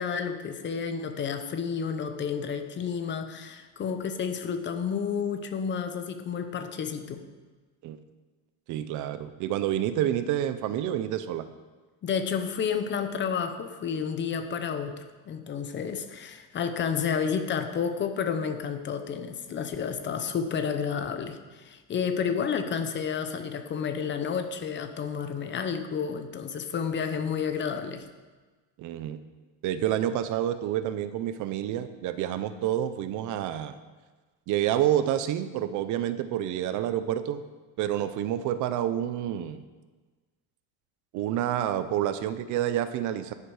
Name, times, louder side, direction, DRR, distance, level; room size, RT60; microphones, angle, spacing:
voice 1, 0.0-7.2 12.0-28.0, left 6 dB, 30° left, 8 dB, 0.9 m, -31 dB
voice 2, 8.7-11.4 28.8-29.2 29.6-33.8 34.5-37.4 37.8-39.6 41.1-43.3, right 11 dB, 50° right, 12 dB, 0.7 m, -28 dB
11.0 x 10.5 x 4.9 m, 1.3 s
cardioid pair, 165°, 38 cm